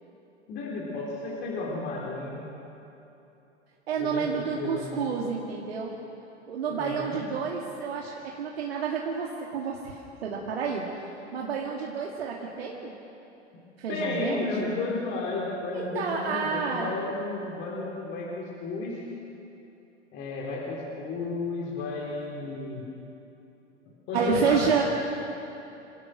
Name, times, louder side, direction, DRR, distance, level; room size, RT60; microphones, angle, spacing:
voice 1, 0.5-2.5 4.0-5.0 6.7-7.2 13.9-19.1 20.1-22.9 24.1-24.8, left 3 dB, 30° left, -3 dB, 3.5 m, -33 dB
voice 2, 3.9-5.9 6.5-13.0 13.8-14.8 15.7-17.0 24.1-24.8, right 6 dB, 60° right, -1 dB, 2.3 m, -30 dB
27.5 x 16.5 x 6.4 m, 2.9 s
figure-of-eight pair, 100°, 35 cm